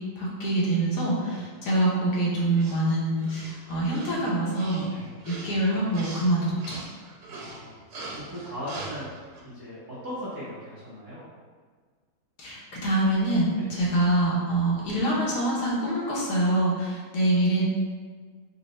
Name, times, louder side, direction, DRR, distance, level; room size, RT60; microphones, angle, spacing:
voice 1, 0.2-4.8 5.1-6.8 12.4-17.6, right 1 dB, 80° left, -5 dB, 1.5 m, -25 dB
sound 1, 2.2-9.4, right 2 dB, 80° right, 1.4 m, -42 dB
voice 2, 7.3-7.7 8.1-9.1 9.4-11.2 13.5-13.7, equal, 15° right, -12 dB, 0.7 m, -38 dB
4.2 x 2.2 x 4.0 m, 1.5 s
omnidirectional pair, 1.7 m